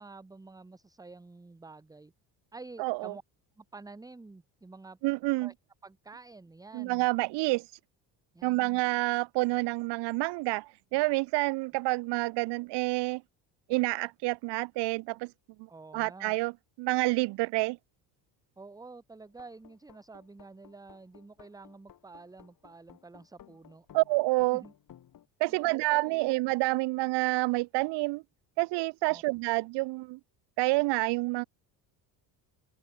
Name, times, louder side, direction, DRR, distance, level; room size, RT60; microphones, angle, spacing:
voice 1, 0.0-2.1 2.5-3.2 3.6-5.0 5.4-5.5 5.8-7.1 8.3-8.8 11.9-12.0 15.7-16.4 18.6-23.9 24.5-24.7 25.5-26.3 29.1-29.2, right 3 dB, 10° right, 0.8 m, -49 dB
voice 2, 2.8-3.1 5.0-5.5 6.7-7.7 8.4-13.2 13.7-15.3 15.9-16.5 16.8-17.8 23.9-24.6 25.4-28.2 28.6-30.2 30.6-31.4, right 23 dB, 65° right, 0.6 m, -28 dB
sound 1, 19.3-25.3, left 10 dB, 45° left, 2.4 m, -57 dB
open air
supercardioid pair, 90°, 45 cm